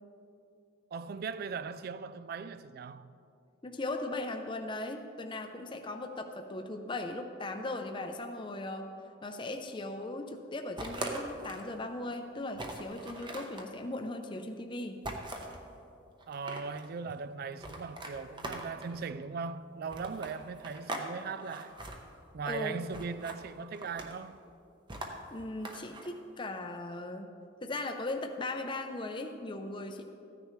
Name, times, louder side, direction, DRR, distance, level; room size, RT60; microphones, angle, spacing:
voice 1, 0.9-3.1 16.3-21.8 22.3-24.4, right 5 dB, 50° right, 0.3 m, -39 dB
voice 2, 3.6-8.9 9.2-15.0 22.4-22.8 25.3-27.3 27.6-30.0, left 2 dB, 25° left, 0.5 m, -38 dB
sound 1, 10.8-11.7 12.1-12.2 12.5-13.7 15.0-15.6 16.2-16.9 17.6-18.9 19.9-21.1 21.4-22.0 22.9-23.4 23.7-24.3 24.9-26.1, right 1 dB, 25° right, 0.8 m, -41 dB
14.5 x 9.7 x 3.2 m
head